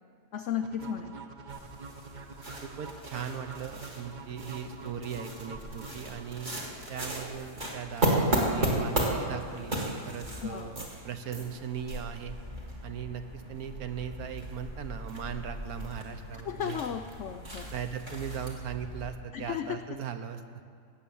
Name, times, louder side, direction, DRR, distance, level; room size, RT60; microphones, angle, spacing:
voice 1, 0.3-1.2 10.4-10.7 16.4-17.7 19.3-20.0, left 9 dB, 75° left, 7 dB, 0.6 m, -35 dB
sound 1, 0.6-6.6, right 4 dB, 45° right, 0.6 m, -46 dB
sound 2, 1.5-19.1, right 1 dB, 30° right, 2.1 m, -35 dB
voice 2, 2.8-6.5 6.9-12.4 12.8-16.8 17.7-20.4, right 8 dB, 70° right, 8 dB, 1.2 m, -38 dB
16.5 x 7.7 x 7.0 m, 2.3 s
omnidirectional pair, 1.8 m